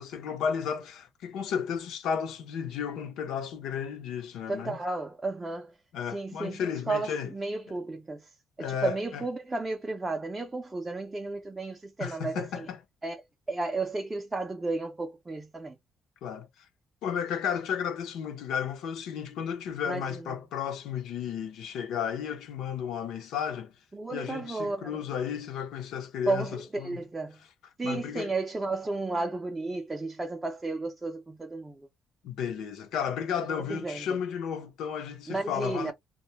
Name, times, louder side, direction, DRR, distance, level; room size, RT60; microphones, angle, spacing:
voice 1, 0.0-4.8 5.9-7.3 8.6-9.2 12.0-12.8 16.2-16.7 17.0-23.7 24.1-27.0 27.8-28.3 32.2-35.9, left 7 dB, 80° left, 0.6 m, -33 dB
voice 2, 4.5-5.7 6.1-12.7 13.0-15.8 19.9-20.3 23.9-25.0 26.3-27.4 27.8-31.9 33.4-34.2 35.3-35.9, right 3 dB, 15° right, 0.4 m, -33 dB
2.2 x 2.1 x 2.8 m
cardioid pair, 155°, 0 cm